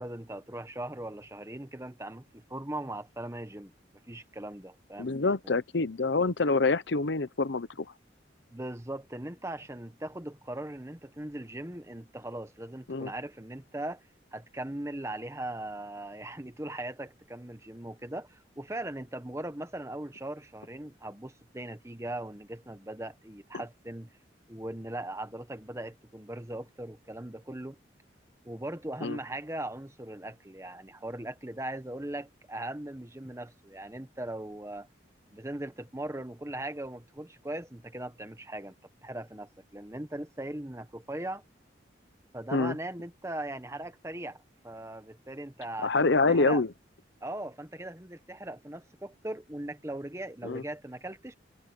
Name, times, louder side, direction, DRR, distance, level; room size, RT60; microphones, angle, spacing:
voice 1, 0.0-3.7 4.1-5.2 8.5-14.0 14.3-24.1 24.5-27.8 28.4-34.9 35.3-38.7 39.0-41.4 42.3-46.6 47.2-51.3, right 1 dB, 15° right, 1.1 m, -39 dB
voice 2, 5.0-7.9 12.9-13.1 29.0-29.2 42.5-42.7 45.8-46.7 50.4-50.6, left 3 dB, 70° left, 0.8 m, -26 dB
head